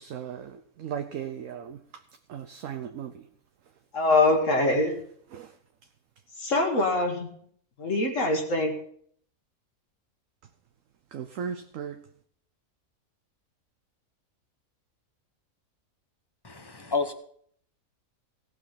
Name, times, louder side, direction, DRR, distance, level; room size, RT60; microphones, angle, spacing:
voice 1, 0.0-1.8 2.3-3.3 5.3-5.5 11.1-12.0, right 8 dB, 70° right, 1.0 m, -36 dB
voice 2, 3.9-4.9 6.4-7.3 7.8-8.7, left 2 dB, 60° left, 1.8 m, -23 dB
voice 3, 16.4-17.1, left 4 dB, 20° left, 0.7 m, -29 dB
17.0 x 6.2 x 5.8 m
omnidirectional pair, 1.5 m